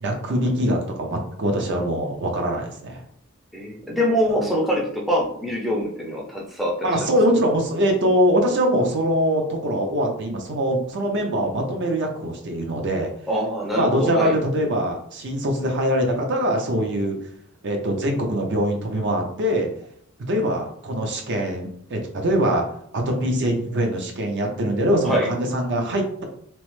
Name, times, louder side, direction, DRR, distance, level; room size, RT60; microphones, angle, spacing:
voice 1, 0.0-3.0 6.8-13.1 13.7-17.2 17.6-19.7 20.3-22.6 23.1-26.2, equal, 55° right, 2 dB, 0.6 m, -23 dB
voice 2, 3.5-7.1 13.3-14.3 25.1-25.3, equal, ahead, -3 dB, 0.5 m, -24 dB
3.0 x 2.0 x 3.1 m, 0.69 s
head